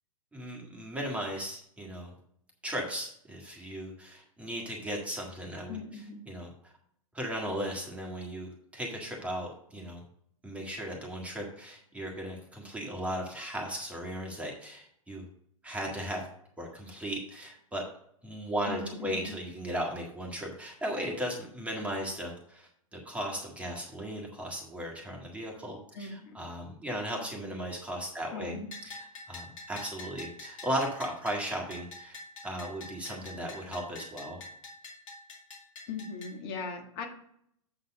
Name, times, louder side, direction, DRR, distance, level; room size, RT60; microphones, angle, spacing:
voice 1, 0.3-2.1 2.6-5.8 6.3-6.5 7.1-10.0 10.4-15.2 15.6-16.3 16.6-17.8 18.2-28.6 28.8-32.2 32.4-34.4, equal, 5° right, 0 dB, 1.7 m, -36 dB
voice 2, 5.7-6.2 18.7-19.3 25.9-26.5 28.3-28.7 35.9-37.1, left 4 dB, 45° left, 2 dB, 1.6 m, -39 dB
Bell, 28.7-36.3, left 2 dB, 65° left, 2.2 m, -46 dB
7.8 x 3.9 x 6.4 m, 0.68 s
figure-of-eight pair, 105°, 18 cm